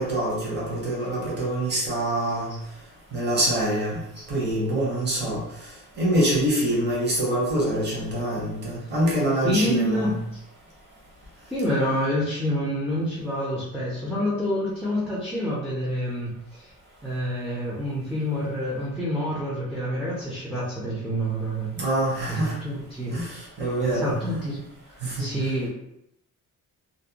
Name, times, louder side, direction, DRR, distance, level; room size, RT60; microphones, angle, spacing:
voice 1, 0.0-2.5 3.1-4.0 4.3-5.4 6.0-10.2 21.8-22.5 23.1-24.2 25.0-25.2, right 1 dB, 30° right, -4 dB, 0.8 m, -25 dB
voice 2, 9.4-10.1 11.5-16.7 17.0-21.7 22.3-23.2 23.8-24.6 25.2-25.7, equal, ahead, -7 dB, 0.4 m, -27 dB
2.5 x 2.0 x 2.7 m, 0.79 s
cardioid pair, 165°, 33 cm